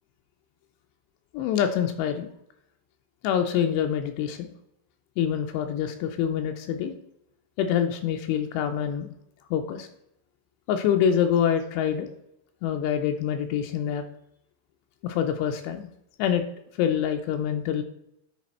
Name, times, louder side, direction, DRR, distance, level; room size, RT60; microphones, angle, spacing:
voice 1, 1.3-2.3 3.2-4.5 5.2-6.9 7.6-9.1 9.5-9.9 10.7-12.1 12.6-14.0 15.0-15.9 16.2-16.4 16.8-17.8, left 9 dB, 85° left, 5 dB, 2.5 m, -25 dB
10.0 x 4.1 x 4.2 m, 0.78 s
omnidirectional pair, 5.6 m